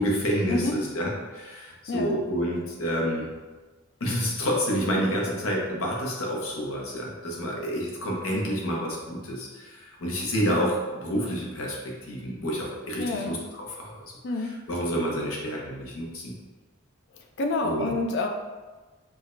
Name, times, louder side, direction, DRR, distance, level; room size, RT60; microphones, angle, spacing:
voice 1, 0.0-3.3 4.0-13.9 14.4-16.3 17.6-17.9, equal, 80° left, -2 dB, 0.8 m, -29 dB
voice 2, 1.9-2.2 13.0-13.4 14.2-14.5 17.4-18.3, left 2 dB, 55° left, 4 dB, 0.4 m, -28 dB
4.8 x 2.1 x 2.5 m, 1.3 s
head